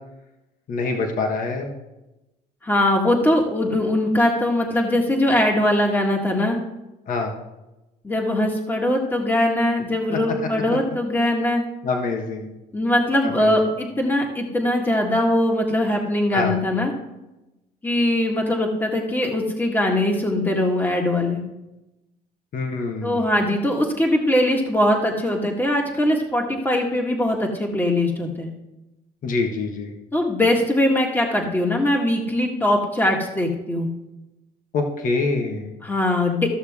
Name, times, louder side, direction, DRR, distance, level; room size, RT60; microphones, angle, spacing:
voice 1, 0.7-1.7 7.1-7.3 10.1-10.2 10.7-10.8 11.8-12.5 13.2-13.6 16.3-16.6 22.5-23.3 29.2-29.9 34.7-35.7, left 3 dB, 55° left, 2 dB, 1.6 m, -25 dB
voice 2, 2.6-6.6 8.0-11.6 12.7-16.9 17.8-21.4 23.0-28.5 30.1-33.9 35.8-36.5, left 1 dB, 10° left, 1 dB, 1.7 m, -21 dB
14.0 x 6.6 x 3.6 m, 0.98 s
cardioid pair, 110°, 17 cm